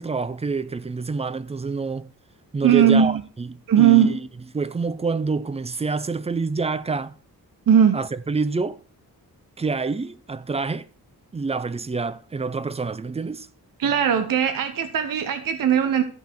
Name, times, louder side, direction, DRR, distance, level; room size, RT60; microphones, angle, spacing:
voice 1, 0.0-2.1 2.5-4.2 4.5-7.1 7.9-8.8 9.6-10.9 11.3-13.5, right 4 dB, 20° right, 0.4 m, -27 dB
voice 2, 2.6-3.2 3.7-4.2 7.7-8.0 13.8-16.0, right 9 dB, 65° right, 0.9 m, -18 dB
13.5 x 5.3 x 4.5 m
wide cardioid pair, 170°, 36 cm